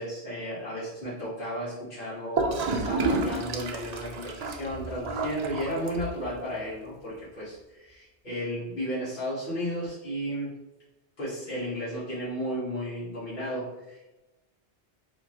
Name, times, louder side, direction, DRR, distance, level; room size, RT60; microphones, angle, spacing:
voice 1, 0.0-10.5 11.2-14.2, equal, 55° left, -11 dB, 1.5 m, -34 dB
Gurgling / Toilet flush, 2.4-6.3, right 3 dB, 55° right, 0.4 m, -30 dB
4.4 x 2.9 x 2.9 m, 1.0 s
omnidirectional pair, 1.1 m